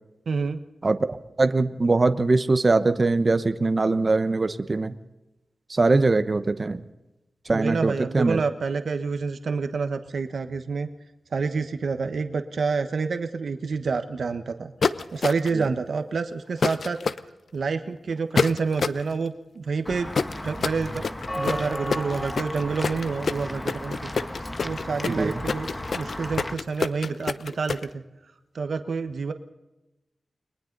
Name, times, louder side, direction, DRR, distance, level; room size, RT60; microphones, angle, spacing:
voice 1, 0.3-0.6 7.5-10.9 11.3-14.7 15.1-17.0 17.5-20.1 20.4-21.0 21.3-24.1 24.6-28.0 28.5-29.3, right 4 dB, 70° right, 8 dB, 1.2 m, -28 dB
voice 2, 0.8-4.9 5.7-6.8 7.5-8.4 15.5-15.6 25.1-25.4, right 3 dB, 40° right, 10 dB, 1.0 m, -22 dB
sound 1, 14.8-15.6 16.6-17.2 18.4-19.0 20.1-27.8, left 5 dB, 70° left, 0.8 m, -26 dB
Walk footsteps / Bell, 19.9-26.5, left 1 dB, 15° left, 1.3 m, -34 dB
30.0 x 22.5 x 4.0 m, 1.0 s
wide cardioid pair, 95°, 0 cm